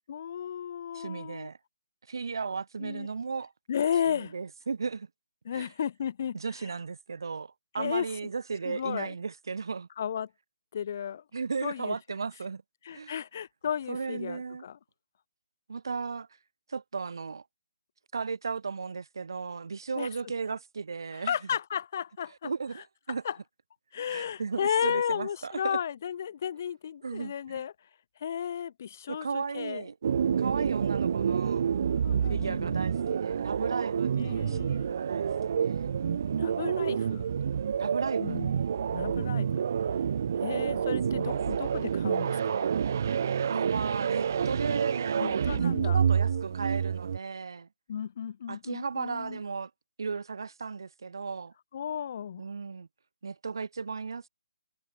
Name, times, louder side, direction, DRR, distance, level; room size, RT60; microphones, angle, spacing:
voice 1, 0.1-1.5 2.8-3.1 3.7-4.3 5.4-6.4 7.8-8.1 8.6-9.1 10.0-10.3 10.7-11.2 11.6-12.0 12.8-14.8 20.0-20.1 21.1-22.5 23.2-23.4 23.9-27.7 28.2-29.8 32.0-32.8 34.2-34.9 36.1-37.3 38.2-38.5 38.9-39.6 40.4-42.7 45.2-46.0 47.9-49.4 51.7-52.4, left 8 dB, 35° left, 3.1 m, -34 dB
voice 2, 0.9-1.6 2.1-3.5 4.2-5.1 5.5-5.7 6.3-9.9 11.3-12.6 12.9-13.1 13.9-14.6 15.7-16.3 16.7-17.4 18.1-21.4 22.4-23.2 24.1-25.8 27.0-27.6 29.1-29.9 30.4-31.7 32.3-36.0 37.8-38.4 41.1-41.4 43.4-47.7 48.5-49.7 50.0-51.5 52.4-52.9 53.2-54.3, right 5 dB, 65° right, 1.5 m, -35 dB
sound 1, 30.0-47.2, right 7 dB, 40° right, 2.5 m, -28 dB
hypercardioid pair, 175°, 2 cm